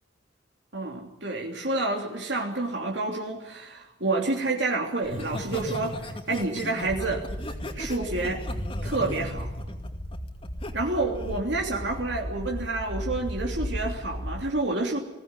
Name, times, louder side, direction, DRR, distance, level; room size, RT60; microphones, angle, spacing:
voice 1, 0.7-7.2 7.8-8.4 8.8-9.5 10.7-15.0, right 2 dB, 75° right, 1 dB, 3.1 m, -29 dB
Laughter, 5.0-10.7 11.1-11.5, left 1 dB, 30° left, 2.4 m, -36 dB
sound 1, 6.9-14.5, equal, 80° left, 6.1 m, -36 dB
21.0 x 17.5 x 9.7 m, 0.99 s
head